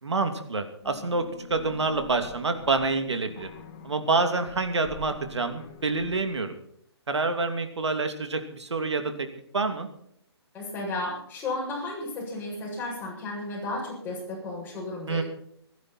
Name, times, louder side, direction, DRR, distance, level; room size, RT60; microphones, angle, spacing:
voice 1, 0.0-3.5 3.8-6.5 7.1-9.3 9.5-9.9 15.1-15.2, right 3 dB, 90° right, 7 dB, 2.8 m, -27 dB
sound 1, 0.8-6.2, left 5 dB, 30° left, 2.3 m, -47 dB
voice 2, 10.5-15.2, left 2 dB, 15° left, -3 dB, 7.6 m, -33 dB
26.0 x 11.5 x 4.4 m, 0.67 s
hypercardioid pair, 155°, 14 cm